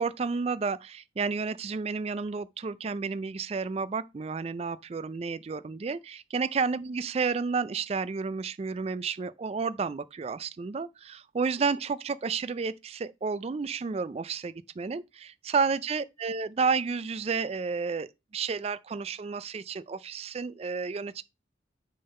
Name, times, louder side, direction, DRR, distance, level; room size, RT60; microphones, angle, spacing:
voice 1, 0.0-18.1 18.3-21.2, right 5 dB, 35° right, 0.3 m, -31 dB
6.7 x 3.8 x 5.3 m
head